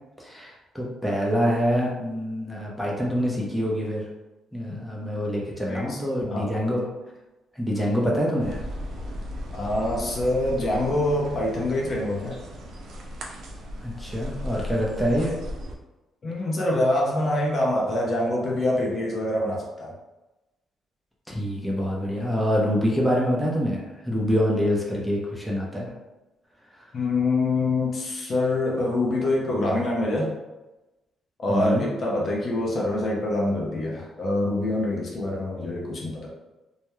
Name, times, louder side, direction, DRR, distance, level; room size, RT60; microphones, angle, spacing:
voice 1, 0.2-4.1 4.5-6.9 7.6-8.6 13.8-15.3 21.3-25.9 31.5-31.9, equal, 5° left, -3 dB, 0.6 m, -25 dB
voice 2, 5.7-6.0 6.3-6.5 9.5-12.4 16.2-19.9 26.9-30.3 31.4-36.3, left 1 dB, 50° left, -3 dB, 0.6 m, -25 dB
sound 1, 8.4-15.8, left 1 dB, 65° right, 0.4 m, -36 dB
2.3 x 2.1 x 3.0 m, 1.1 s
cardioid pair, 90°, 0 cm